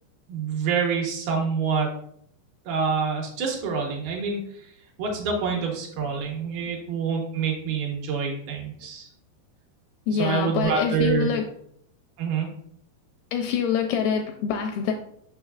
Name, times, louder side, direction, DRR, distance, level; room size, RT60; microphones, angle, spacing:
voice 1, 0.3-2.0 2.7-4.7 5.0-9.1 10.2-11.3 12.2-12.5, right 5 dB, 75° right, 0 dB, 2.7 m, -26 dB
voice 2, 10.1-11.5 13.3-14.9, left 7 dB, 85° left, 4 dB, 2.2 m, -25 dB
6.4 x 6.2 x 2.3 m, 0.69 s
omnidirectional pair, 4.7 m